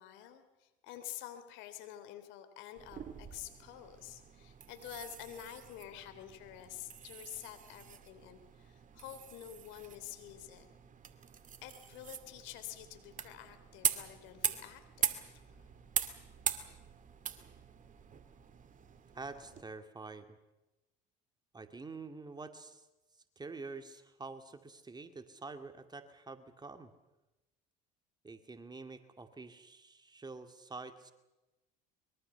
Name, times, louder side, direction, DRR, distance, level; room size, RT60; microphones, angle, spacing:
voice 1, 0.0-10.7 11.6-15.7, left 12 dB, 65° left, 10 dB, 3.3 m, -49 dB
sound 1, 2.8-19.6, right 7 dB, 40° right, 2.3 m, -42 dB
voice 2, 19.1-20.3 21.5-22.8 23.4-26.9 28.2-31.1, right 3 dB, 20° right, 8 dB, 2.3 m, -47 dB
24.0 x 22.5 x 7.0 m, 1.0 s
hypercardioid pair, 75°, 21 cm